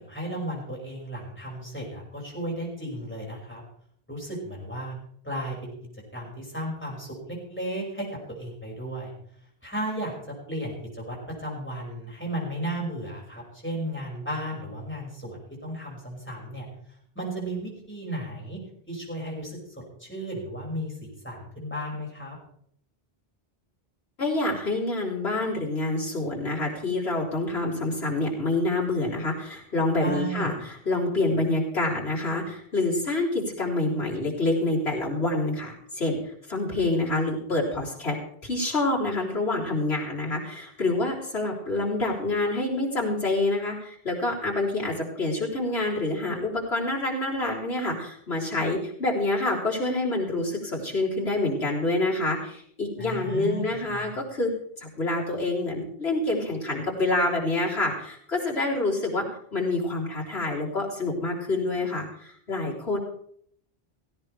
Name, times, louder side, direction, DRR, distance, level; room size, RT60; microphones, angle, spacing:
voice 1, 0.1-3.6 4.1-4.9 5.2-5.7 6.1-9.1 9.6-10.1 10.5-16.7 17.2-18.6 18.9-22.4 30.0-30.5 53.0-54.1, right 1 dB, 10° left, -3 dB, 5.9 m, -34 dB
voice 2, 24.2-38.2 38.4-54.5 54.8-63.0, left 2 dB, 80° left, -5 dB, 4.1 m, -27 dB
17.0 x 16.0 x 3.4 m, 0.65 s
omnidirectional pair, 1.0 m